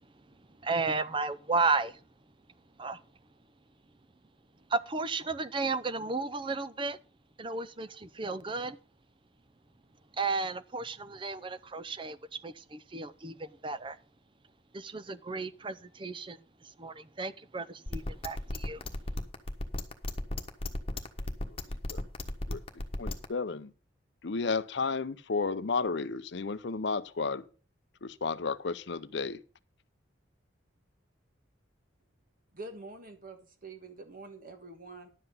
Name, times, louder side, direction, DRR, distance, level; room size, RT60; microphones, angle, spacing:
voice 1, 0.6-2.0 2.8-3.0 4.7-7.0 7.4-8.8 10.1-14.0 14.7-16.4 16.8-18.8, right 3 dB, 25° right, 0.5 m, -33 dB
sound 1, 17.9-23.3, left 1 dB, 30° left, 1.3 m, -34 dB
voice 2, 21.4-22.0 22.5-22.6 23.0-23.7 24.2-27.4 28.0-29.4, left 4 dB, 60° left, 0.6 m, -33 dB
voice 3, 32.5-35.1, right 2 dB, 45° right, 1.4 m, -46 dB
11.0 x 7.9 x 5.4 m
head